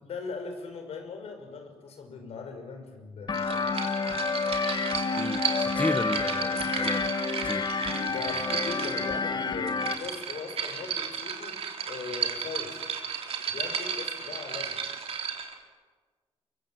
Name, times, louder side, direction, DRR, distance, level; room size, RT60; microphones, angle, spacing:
voice 1, 0.0-3.6 8.1-11.6 11.9-12.7 13.5-14.8, left 4 dB, 75° left, 5 dB, 5.7 m, -39 dB
sound 1, 3.3-9.9, left 4 dB, 45° left, 1.6 m, -29 dB
sound 2, 3.3-15.6, right 7 dB, 65° right, 3.5 m, -34 dB
voice 2, 5.2-7.1 7.4-7.7, left 2 dB, 10° left, 13 dB, 1.1 m, -33 dB
24.5 x 23.5 x 7.8 m, 1.4 s
cardioid pair, 115°, 11 cm